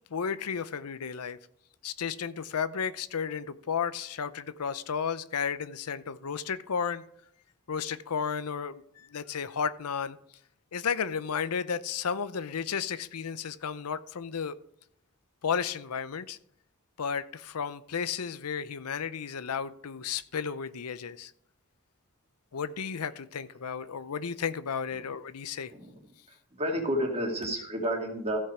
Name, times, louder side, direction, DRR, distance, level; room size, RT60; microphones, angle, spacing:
voice 1, 0.1-1.4 1.8-7.0 7.7-10.2 10.7-14.5 15.4-16.4 17.0-21.3 22.5-25.7, left 6 dB, 80° left, 14 dB, 0.6 m, -33 dB
voice 2, 25.7-28.4, equal, 30° right, 1 dB, 2.4 m, -31 dB
15.0 x 5.6 x 4.9 m, 0.70 s
head